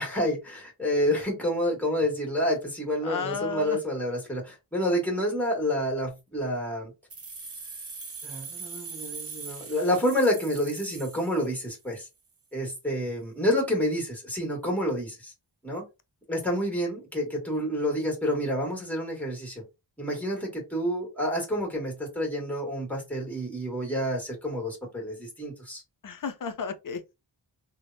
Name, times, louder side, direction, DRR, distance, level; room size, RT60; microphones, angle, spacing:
voice 1, 0.0-6.9 8.2-12.1 12.5-15.3 15.6-15.8 16.3-19.6 20.0-25.8, equal, 5° left, 1.4 m, -28 dB
voice 2, 3.0-3.8 26.0-27.2, left 5 dB, 50° left, 0.5 m, -33 dB
sound 1, 7.1-11.9, right 5 dB, 35° right, 0.6 m, -41 dB
3.3 x 2.1 x 2.6 m
wide cardioid pair, 60°, 44 cm